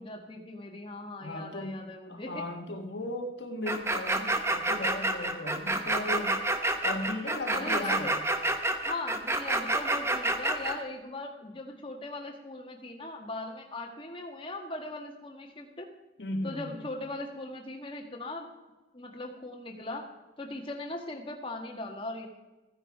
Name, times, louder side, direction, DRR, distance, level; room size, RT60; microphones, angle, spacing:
voice 1, 0.0-2.4 7.5-8.2 8.9-15.9 16.4-18.5 18.9-20.1 20.4-22.3, left 2 dB, 30° left, 2 dB, 1.5 m, -39 dB
voice 2, 1.2-6.4 6.8-8.2 16.2-16.8, left 1 dB, 65° left, 4 dB, 1.5 m, -36 dB
sound 1, 3.7-10.8, right 2 dB, 15° right, 0.9 m, -28 dB
15.5 x 10.0 x 4.8 m, 1.1 s
head